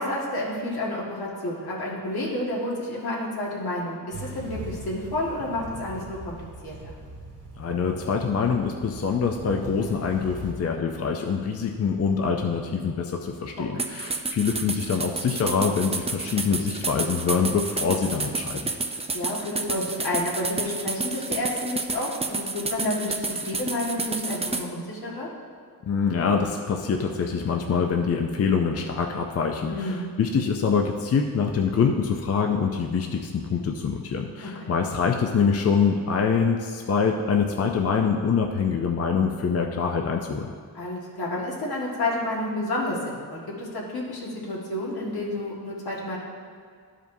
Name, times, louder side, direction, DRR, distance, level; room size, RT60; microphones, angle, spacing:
voice 1, 0.0-6.9 13.6-13.9 19.1-25.3 29.7-30.1 34.4-34.7 40.7-46.2, left 1 dB, 80° left, -4 dB, 1.8 m, -30 dB
sound 1, 4.1-10.5, right 2 dB, 85° right, 1.8 m, -40 dB
voice 2, 7.6-18.6 25.9-40.5, left 6 dB, 40° left, 2 dB, 0.5 m, -25 dB
sound 2, 13.8-24.7, right 3 dB, 15° right, 0.4 m, -30 dB
12.0 x 5.0 x 2.7 m, 2.1 s
wide cardioid pair, 105°, 37 cm